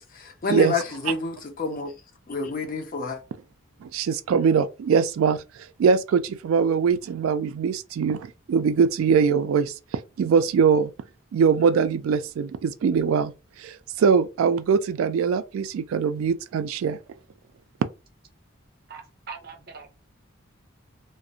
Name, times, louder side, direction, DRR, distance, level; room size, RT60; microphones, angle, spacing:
voice 1, 0.0-1.9 2.3-3.2, left 3 dB, 40° left, 0.4 m, -29 dB
voice 2, 3.8-5.4 5.8-9.7 10.2-10.9 11.3-13.3 13.6-17.0, right 6 dB, 90° right, 0.3 m, -22 dB
voice 3, 18.9-19.9, right 5 dB, 50° right, 0.7 m, -41 dB
2.4 x 2.0 x 2.7 m
head